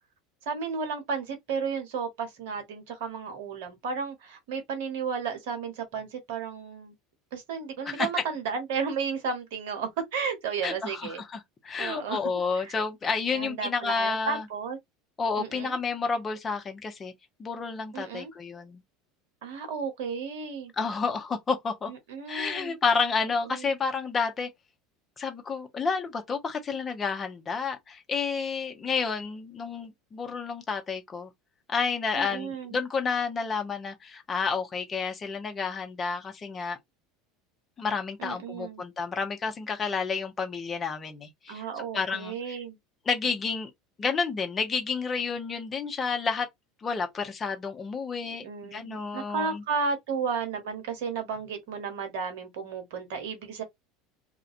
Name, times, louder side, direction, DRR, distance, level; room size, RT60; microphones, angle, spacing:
voice 1, 0.5-6.9 7.3-11.2 11.8-12.2 12.5-12.7 13.3-14.8 15.4-15.8 17.9-18.3 19.4-20.7 21.9-22.8 23.2-23.6 32.1-32.8 38.2-38.8 41.5-42.8 48.4-53.6, right 5 dB, 65° right, 0.9 m, -33 dB
voice 2, 10.6-14.5 15.2-17.1 17.4-18.8 20.8-21.9 22.3-24.5 25.2-31.3 31.7-36.8 37.8-41.6 41.9-42.6 43.1-43.7 44.0-46.5 46.8-49.6, left 5 dB, 30° left, 0.7 m, -30 dB
2.4 x 2.2 x 2.4 m
hypercardioid pair, 75°, 0 cm